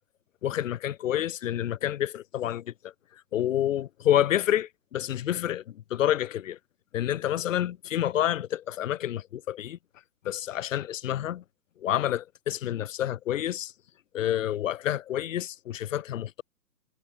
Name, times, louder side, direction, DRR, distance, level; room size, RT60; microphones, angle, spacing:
voice 1, 0.4-2.9 3.3-6.6 6.9-9.8 10.2-11.4 11.8-13.7 14.1-16.4, left 11 dB, 50° left, 1.1 m, -28 dB
hypercardioid pair, 140°, 49 cm